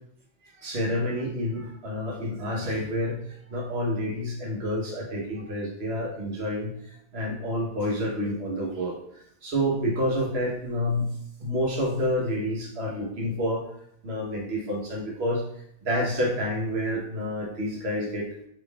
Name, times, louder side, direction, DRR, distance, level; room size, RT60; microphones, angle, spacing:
voice 1, 0.4-11.1 11.4-13.6 14.0-15.4 15.8-18.2, equal, 55° right, -2 dB, 1.3 m, -29 dB
5.4 x 3.7 x 2.3 m, 0.72 s
omnidirectional pair, 1.4 m